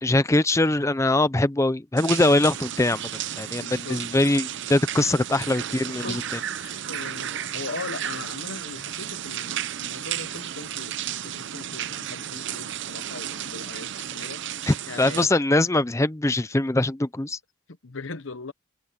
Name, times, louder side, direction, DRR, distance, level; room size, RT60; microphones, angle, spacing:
voice 1, 0.0-3.0 3.4-6.2 14.7-17.4, left 2 dB, 15° left, 0.5 m, -22 dB
sound 1, 2.0-15.3, right 10 dB, 60° right, 0.6 m, -33 dB
voice 2, 3.6-4.0 5.1-5.2 5.9-6.2 6.6-14.4 14.9-15.3 17.8-18.5, left 3 dB, 65° left, 1.0 m, -39 dB
open air
head